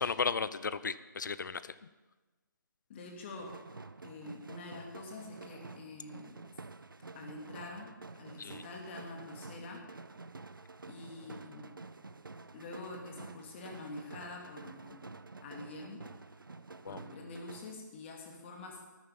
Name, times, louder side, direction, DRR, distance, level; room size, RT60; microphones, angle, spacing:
voice 1, 0.0-1.8 8.4-8.6 16.8-17.0, left 5 dB, 65° left, 15 dB, 0.7 m, -34 dB
voice 2, 2.9-3.6 4.0-6.4 7.1-9.9 10.9-11.8 12.5-15.1 15.4-16.1 16.9-18.8, left 2 dB, 35° left, 0 dB, 2.7 m, -46 dB
sound 1, 3.4-17.7, right 3 dB, 85° right, 0.7 m, -49 dB
13.0 x 9.4 x 7.1 m, 1.2 s
figure-of-eight pair, 140°, 11 cm